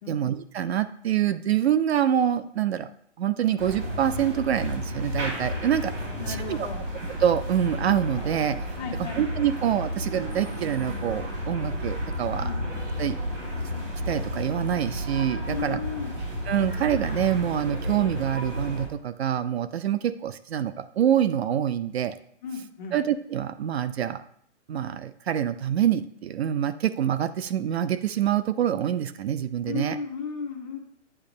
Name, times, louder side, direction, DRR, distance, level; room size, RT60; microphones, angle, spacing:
voice 1, 0.1-2.9 3.2-5.9 6.3-6.7 7.2-8.7 9.0-12.5 13.0-13.2 14.1-15.8 16.5-22.2 22.9-24.2 24.7-30.0, right 10 dB, 60° right, 13 dB, 0.4 m, -26 dB
sound 1, 3.6-18.9, equal, 85° right, 2.4 m, -32 dB
voice 2, 6.1-6.8 8.8-9.2 12.4-12.6 15.5-16.1 22.4-23.0 29.6-30.8, left 5 dB, 35° left, 1 dB, 1.3 m, -35 dB
8.7 x 2.9 x 5.2 m, 0.62 s
hypercardioid pair, 160°, 37 cm